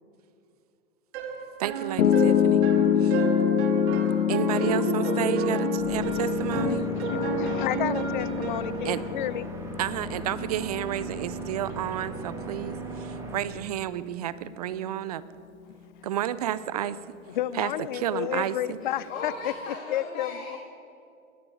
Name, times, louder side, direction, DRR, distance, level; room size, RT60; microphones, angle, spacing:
sound 1, 1.1-8.8, right 5 dB, 50° right, 2.4 m, -31 dB
voice 1, 1.6-2.6 3.0-3.3 4.3-6.8 8.8-9.0 9.8-15.2 16.0-17.0 17.5-18.8, right 11 dB, 30° right, 16 dB, 0.4 m, -31 dB
Piano, 2.0-14.2, left 9 dB, 85° left, 0.8 m, -27 dB
voice 2, 4.3-5.3 18.8-20.6, left 4 dB, 70° left, -1 dB, 2.7 m, -39 dB
sound 2, 5.7-13.3, right 4 dB, 5° right, 1.9 m, -38 dB
voice 3, 6.5-9.5 17.3-19.5 19.9-20.6, left 12 dB, 40° left, 19 dB, 0.4 m, -31 dB
20.0 x 6.9 x 9.6 m, 2.7 s
hypercardioid pair, 135°, 41 cm